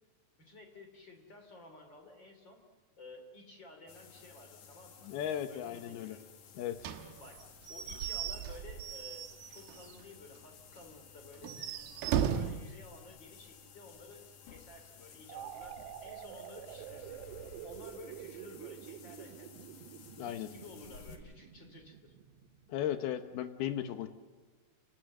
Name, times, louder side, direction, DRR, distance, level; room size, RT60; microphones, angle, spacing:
voice 1, 0.4-2.6 3.0-5.1 5.5-6.3 7.2-11.6 12.1-17.2 17.6-19.7 20.1-22.1, left 2 dB, 30° left, 5 dB, 3.2 m, -53 dB
sound 1, 3.9-21.2, left 7 dB, 55° left, 2.8 m, -55 dB
voice 2, 5.0-6.2 6.5-6.9 20.2-20.5 22.7-24.1, left 10 dB, 75° left, 10 dB, 2.9 m, -36 dB
Slam / Squeak / Wood, 6.8-10.0 10.4-10.5 10.8-10.9 11.4-12.7, right 8 dB, 70° right, 3.0 m, -36 dB
sound 2, 15.3-23.0, right 12 dB, 85° right, 3.1 m, -48 dB
30.0 x 18.5 x 7.7 m, 1.4 s
omnidirectional pair, 4.8 m